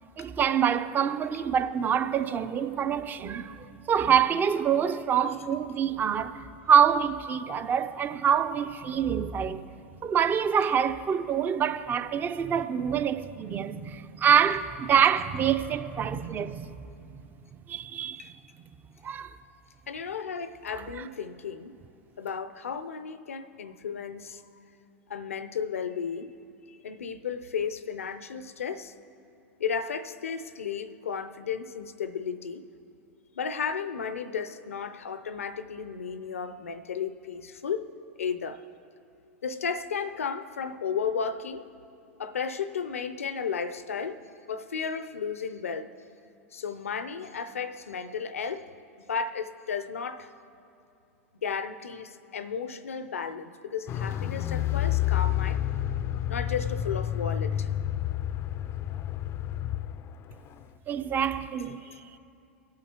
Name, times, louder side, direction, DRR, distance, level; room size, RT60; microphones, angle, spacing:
voice 1, 0.2-9.7 10.0-16.7 17.7-18.3 19.0-19.3 21.0-21.1 60.9-61.8, right 8 dB, 25° right, 0.5 m, -26 dB
voice 2, 19.9-21.7 22.2-24.4 25.1-26.4 26.7-28.9 29.6-32.6 33.3-37.9 38.2-38.6 39.4-41.7 42.2-46.0 46.5-48.8 49.1-50.3 51.4-55.6 56.3-57.7 61.8-62.0, left 6 dB, 85° left, 0.6 m, -34 dB
Car, 53.9-60.1 60.3-60.4, left 12 dB, 35° left, 0.4 m, -29 dB
23.0 x 8.6 x 2.9 m
hypercardioid pair, 95°, 7 cm